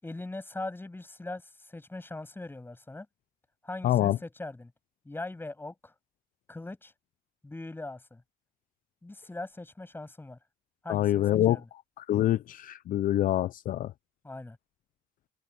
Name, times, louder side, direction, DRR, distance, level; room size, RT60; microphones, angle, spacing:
voice 1, 0.0-3.1 3.6-4.7 5.1-5.9 6.5-6.9 7.4-8.2 9.0-10.4 10.8-11.7 14.2-14.6, left 2 dB, 10° left, 7.1 m, -40 dB
voice 2, 3.8-4.2 10.9-11.6 12.0-13.9, left 13 dB, 55° left, 0.5 m, -26 dB
cardioid pair, 110°, 17 cm